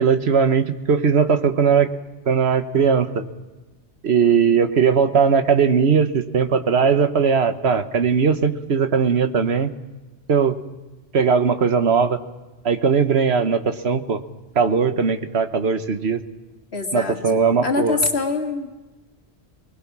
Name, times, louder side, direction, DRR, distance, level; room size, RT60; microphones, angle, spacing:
voice 1, 0.0-1.9 2.3-3.3 4.0-9.7 10.3-10.5 11.1-12.2 12.6-14.2 14.5-16.2 16.9-18.0, right 6 dB, 75° right, 9 dB, 1.4 m, -19 dB
voice 2, 16.7-18.7, left 3 dB, 70° left, 3 dB, 2.3 m, -24 dB
25.5 x 20.0 x 6.1 m, 1.2 s
omnidirectional pair, 1.1 m